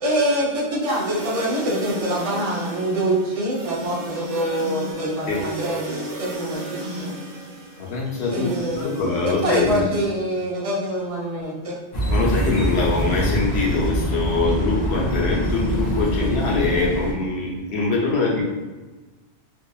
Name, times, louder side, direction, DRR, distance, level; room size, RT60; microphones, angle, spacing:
voice 1, 0.0-6.6 7.0-7.1 8.3-9.1 9.4-11.8, right 1 dB, 40° right, -5 dB, 0.5 m, -25 dB
sound 1, 0.8-9.9, right 2 dB, 85° right, 1.0 m, -34 dB
voice 2, 7.8-10.0 12.1-18.4, left 3 dB, 65° left, -3 dB, 0.9 m, -23 dB
sound 2, 11.9-17.1, equal, 50° left, 0.5 m, -24 dB
2.7 x 2.3 x 2.3 m, 1.2 s
omnidirectional pair, 1.2 m